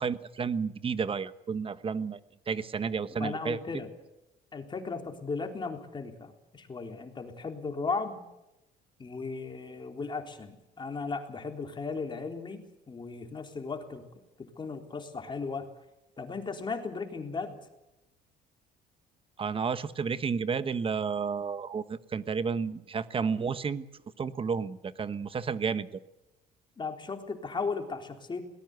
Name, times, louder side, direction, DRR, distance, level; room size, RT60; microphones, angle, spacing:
voice 1, 0.0-2.2 2.5-3.6 19.4-23.8 24.2-25.9, right 5 dB, 30° right, 13 dB, 1.2 m, -31 dB
voice 2, 3.2-3.9 4.5-8.2 9.0-14.0 14.4-15.7 16.2-17.6 26.8-28.4, left 4 dB, 25° left, 4 dB, 3.8 m, -36 dB
22.0 x 19.0 x 8.1 m, 0.93 s
cardioid pair, 110°, 17 cm